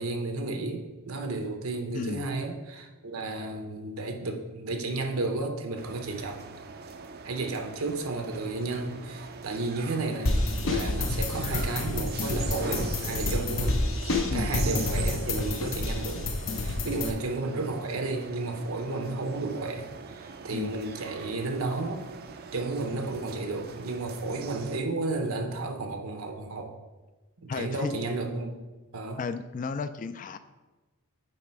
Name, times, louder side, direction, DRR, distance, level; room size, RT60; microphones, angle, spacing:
voice 1, 0.0-6.5 7.2-16.2 16.6-22.1 22.5-26.7 27.4-28.5 28.9-29.2, right 2 dB, 85° right, 4 dB, 0.9 m, -32 dB
voice 2, 1.9-2.3 14.3-14.6 16.8-16.9 20.5-20.8 27.5-27.9 29.2-30.4, left 4 dB, 40° left, 11 dB, 0.3 m, -33 dB
sound 1, 5.8-24.8, right 5 dB, 45° right, 0.4 m, -43 dB
sound 2, 10.3-17.1, left 2 dB, 65° left, 0.8 m, -29 dB
8.9 x 3.2 x 4.6 m, 1.2 s
head